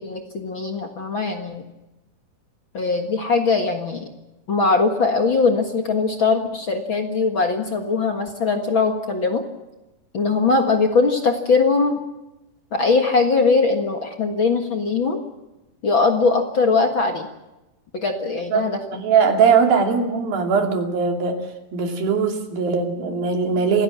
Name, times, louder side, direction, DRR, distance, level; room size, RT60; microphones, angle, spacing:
voice 1, 0.0-1.6 2.7-4.1 4.5-9.4 10.1-12.0 12.7-15.2 15.8-17.3 17.9-18.8, left 4 dB, 45° left, 4 dB, 1.9 m, -20 dB
voice 2, 18.5-21.4 21.7-23.8, right 5 dB, 80° right, 4 dB, 4.5 m, -20 dB
27.5 x 16.5 x 7.4 m, 1.0 s
omnidirectional pair, 4.1 m